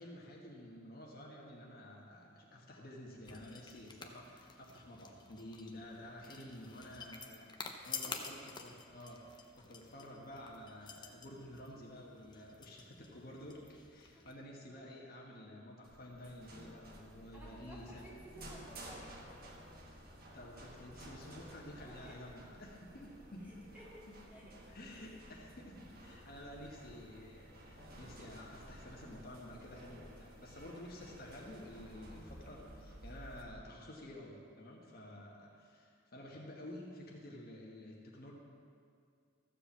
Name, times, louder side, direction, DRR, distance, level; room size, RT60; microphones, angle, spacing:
voice 1, 0.0-18.1 20.3-23.7 24.1-24.2 24.4-38.3, left 1 dB, 50° left, -2 dB, 1.3 m, -51 dB
sound 1, 3.2-14.3, left 5 dB, 25° left, 0.7 m, -50 dB
sound 2, 15.8-33.4, right 1 dB, 50° right, 1.4 m, -54 dB
voice 2, 17.3-19.7 21.8-22.2 23.4-24.5 24.9-25.2, equal, 10° right, -6 dB, 2.3 m, -56 dB
14.0 x 5.0 x 7.2 m, 2.3 s
head